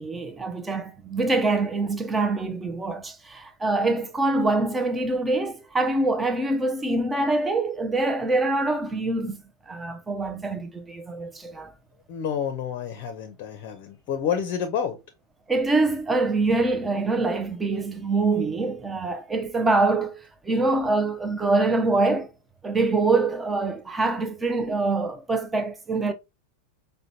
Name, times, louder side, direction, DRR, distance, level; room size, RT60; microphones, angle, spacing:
voice 1, 0.0-11.7 15.5-22.3 22.6-26.1, right 3 dB, 10° right, 0.5 m, -25 dB
voice 2, 12.1-15.0, left 8 dB, 40° left, 0.6 m, -29 dB
4.9 x 2.2 x 2.7 m
figure-of-eight pair, 90°, 0 cm